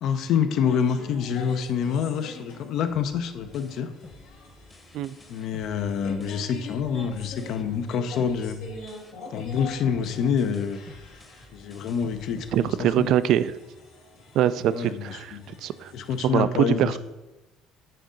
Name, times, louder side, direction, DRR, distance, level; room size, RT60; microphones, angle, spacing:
voice 1, 0.0-3.9 5.3-8.6 9.3-10.8 11.5-13.1 14.7-15.4 15.9-17.0, left 7 dB, 60° left, 9 dB, 0.6 m, -27 dB
sound 1, 0.6-16.2, left 3 dB, 80° left, 1.7 m, -45 dB
sound 2, 2.9-7.9 8.2-13.2, left 2 dB, 15° left, 0.9 m, -50 dB
voice 2, 12.5-13.6 14.3-15.9 16.2-17.0, right 11 dB, 65° right, 15 dB, 0.3 m, -23 dB
7.7 x 3.7 x 5.1 m, 1.1 s
cardioid pair, 110°, 0 cm